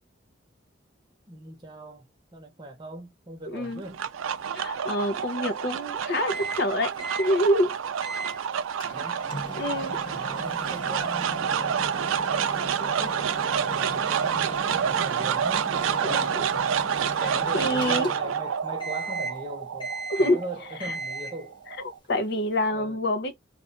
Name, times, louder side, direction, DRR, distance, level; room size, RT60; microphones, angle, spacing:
voice 1, 1.3-4.1 8.9-9.2 10.0-12.2 12.8-16.8 17.2-19.9 20.2-21.6 22.7-23.0, right 1 dB, 20° right, 0.9 m, -40 dB
voice 2, 3.5-3.8 4.5-7.7 9.5-10.0 16.0-16.4 17.2-18.1 20.1-20.4 20.8-20.9 22.1-23.4, left 1 dB, 55° left, 0.6 m, -26 dB
sound 1, 3.6-22.0, right 8 dB, 80° right, 0.4 m, -28 dB
Microwave oven, 6.3-6.7 7.0-7.3 8.0-8.4 8.8-18.4 18.8-19.4 19.8-20.4 20.8-21.4, right 1 dB, 25° left, 0.8 m, -38 dB
2.5 x 2.3 x 3.9 m
head